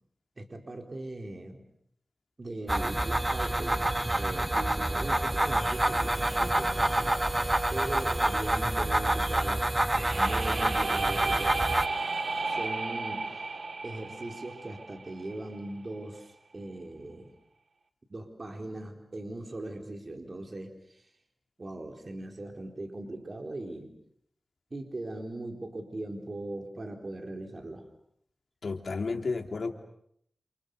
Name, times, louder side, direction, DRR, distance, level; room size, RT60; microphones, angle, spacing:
voice 1, 0.4-1.6 2.4-3.9 4.1-9.7 10.0-11.6 12.4-13.5 13.8-17.3 18.1-21.1 21.6-23.9 24.7-27.9, right 2 dB, 45° right, 3 dB, 4.2 m, -40 dB
sound 1, 2.7-11.9, right 1 dB, 20° right, 1.3 m, -27 dB
sound 2, 9.8-15.7, right 3 dB, 65° right, 1.9 m, -33 dB
voice 2, 28.6-29.7, left 4 dB, 70° left, 4 dB, 3.4 m, -32 dB
29.5 x 28.5 x 6.7 m, 0.70 s
cardioid pair, 60°, 0 cm